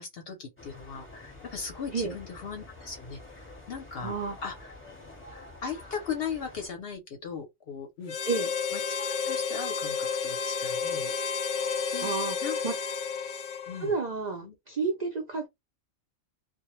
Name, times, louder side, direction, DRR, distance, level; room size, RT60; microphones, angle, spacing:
voice 1, 0.0-4.1 4.4-4.7 5.3-8.2 8.7-11.2 11.9-12.1 12.4-12.6 13.7-13.9 14.4-14.5, left 6 dB, 55° left, 0.7 m, -38 dB
sound 1, 0.6-6.7, left 2 dB, 10° left, 0.8 m, -48 dB
voice 2, 4.0-4.4 8.3-8.5 12.0-12.4 12.6-12.7 13.8-15.5, right 4 dB, 60° right, 0.4 m, -30 dB
Harmonica, 8.1-14.0, left 5 dB, 90° left, 0.4 m, -31 dB
2.2 x 2.1 x 3.0 m
omnidirectional pair, 1.4 m